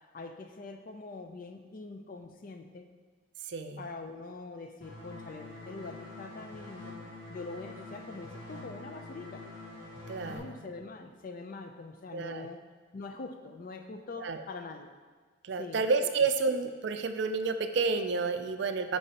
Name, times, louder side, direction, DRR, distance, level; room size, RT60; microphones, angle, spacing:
voice 1, 0.0-2.9 3.8-7.0 7.3-9.5 10.2-12.6 12.9-14.9 15.6-15.8, left 3 dB, 40° left, 7 dB, 0.4 m, -44 dB
voice 2, 3.5-3.8 10.1-10.6 12.1-12.5 14.2-14.4 15.4-19.0, right 4 dB, 55° right, 8 dB, 0.4 m, -30 dB
sound 1, 4.8-10.4, left 2 dB, 65° left, 1.4 m, -46 dB
8.1 x 4.7 x 2.9 m, 1.4 s
head